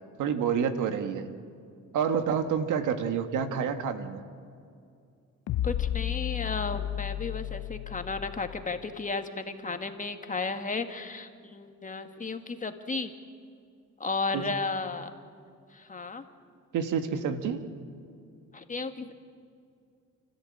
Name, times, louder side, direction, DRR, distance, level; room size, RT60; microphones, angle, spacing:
voice 1, 0.2-1.3 1.9-4.2 14.3-14.5 16.7-17.6, right 7 dB, 85° right, 8 dB, 1.8 m, -28 dB
Bass Drop, 5.5-8.9, left 12 dB, 60° left, 0.5 m, -33 dB
voice 2, 5.6-13.1 14.0-15.1 15.7-16.3 18.5-19.1, left 4 dB, 25° left, 6 dB, 1.8 m, -34 dB
29.5 x 14.0 x 8.7 m, 2.4 s
cardioid pair, 90°, 30 cm